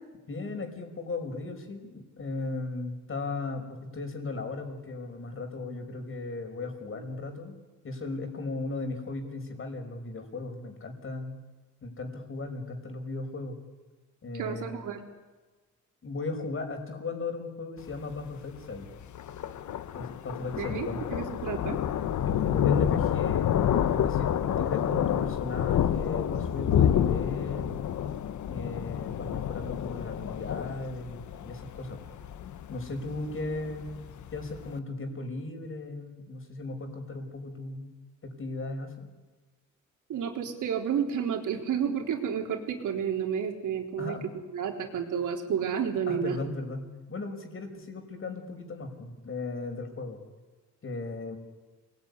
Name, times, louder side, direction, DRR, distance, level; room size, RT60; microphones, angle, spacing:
voice 1, 0.3-7.5 7.8-11.3 11.8-13.6 14.2-14.7 16.0-18.9 19.9-21.0 22.2-23.6 23.9-27.8 28.4-32.0 32.7-34.0 34.3-37.9 38.2-39.1 44.0-44.2 46.1-50.2 50.8-51.4, left 3 dB, 45° left, 5 dB, 5.6 m, -36 dB
voice 2, 14.3-15.0 20.6-21.8 40.1-44.2 44.5-46.4, right 7 dB, 80° right, 3 dB, 4.0 m, -31 dB
Thunder, 17.8-34.7, left 9 dB, 70° left, 1.2 m, -29 dB
28.5 x 21.0 x 9.8 m, 1.3 s
cardioid pair, 110°, 30 cm